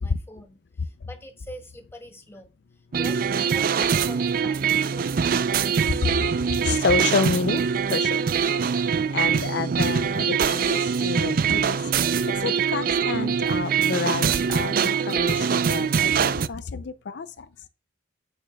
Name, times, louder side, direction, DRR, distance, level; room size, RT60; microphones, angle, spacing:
voice 1, 0.0-5.9 17.6-17.7, left 1 dB, 15° left, 1.3 m, -45 dB
sound 1, 2.9-16.5, right 6 dB, 50° right, 0.4 m, -23 dB
voice 2, 6.6-8.2 9.1-17.5, left 4 dB, 60° left, 0.5 m, -29 dB
14.5 x 6.6 x 2.3 m
head